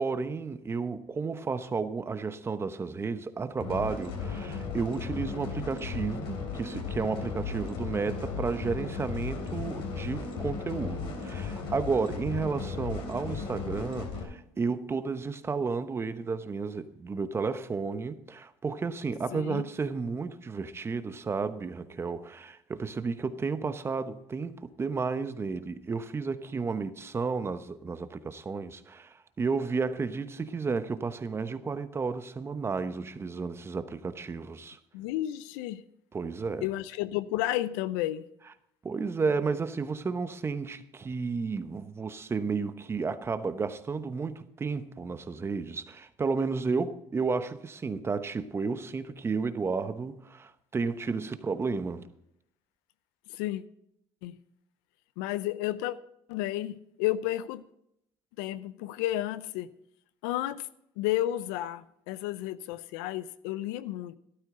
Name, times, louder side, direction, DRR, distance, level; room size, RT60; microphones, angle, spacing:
voice 1, 0.0-34.8 36.1-36.7 38.8-52.1, right 4 dB, 25° right, 1.0 m, -32 dB
sound 1, 3.6-14.2, left 5 dB, 65° left, 3.5 m, -36 dB
voice 2, 19.3-19.7 34.9-35.8 36.6-38.2 53.3-53.6 54.2-54.4 55.2-56.0 56.3-57.6 58.4-59.7 60.2-60.7 61.0-64.2, left 14 dB, 85° left, 0.6 m, -32 dB
13.0 x 12.0 x 3.9 m
supercardioid pair, 90°, 10 cm